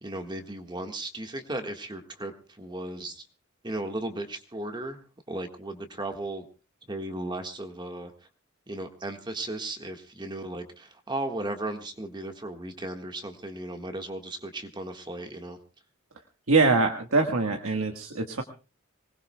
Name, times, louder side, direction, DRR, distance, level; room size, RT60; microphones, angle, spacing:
voice 1, 0.0-3.3 3.6-6.4 6.9-8.1 8.7-15.6, right 1 dB, 20° right, 5 dB, 1.5 m, -36 dB
voice 2, 16.5-18.4, right 3 dB, 85° right, 3 dB, 1.5 m, -23 dB
25.5 x 19.5 x 2.2 m, 0.34 s
head